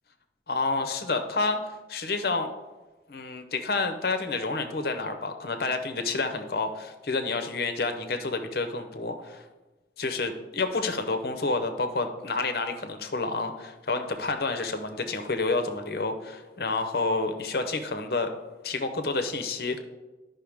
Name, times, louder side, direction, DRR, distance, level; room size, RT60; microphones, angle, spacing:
voice 1, 0.5-1.6 1.9-2.5 3.1-9.4 10.0-18.3 18.6-19.8, left 3 dB, 60° left, 7 dB, 0.7 m, -29 dB
11.0 x 5.5 x 3.5 m, 1.2 s
head